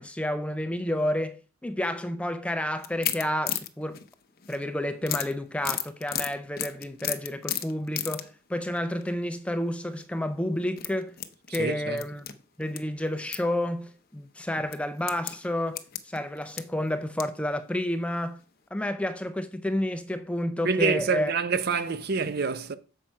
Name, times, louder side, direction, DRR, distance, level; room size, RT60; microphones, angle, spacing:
voice 1, 0.0-4.0 4.5-11.2 11.5-12.3 12.6-18.4 18.7-21.3, left 1 dB, 5° left, 0.4 m, -30 dB
sound 1, 2.8-4.6 5.0-8.3 8.7-9.1 9.9-10.1 10.7-12.8 13.1-13.4 13.8-13.9 14.7-17.4 17.9-18.0 18.3-18.4, left 11 dB, 45° left, 0.6 m, -34 dB
voice 2, 11.5-12.0 20.6-22.8, right 5 dB, 50° right, 0.6 m, -27 dB
7.5 x 5.2 x 4.5 m
head